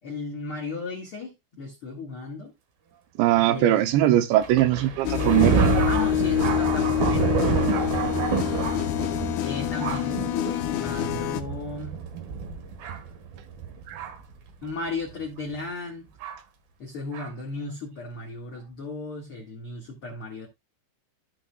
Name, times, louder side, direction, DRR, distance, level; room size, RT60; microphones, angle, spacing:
voice 1, 0.0-2.5 3.4-3.9 5.8-7.4 9.4-12.1 14.6-16.1 16.8-20.5, left 3 dB, 60° left, 1.4 m, -35 dB
voice 2, 3.2-5.6 13.9-14.0, right 13 dB, 80° right, 2.8 m, -20 dB
Thunder, 4.4-14.3 15.1-15.2 16.2-16.4 17.1-17.3, right 6 dB, 65° right, 2.8 m, -28 dB
sound 1, 5.0-11.4, left 11 dB, 75° left, 2.3 m, -26 dB
15.0 x 5.2 x 2.3 m
omnidirectional pair, 5.4 m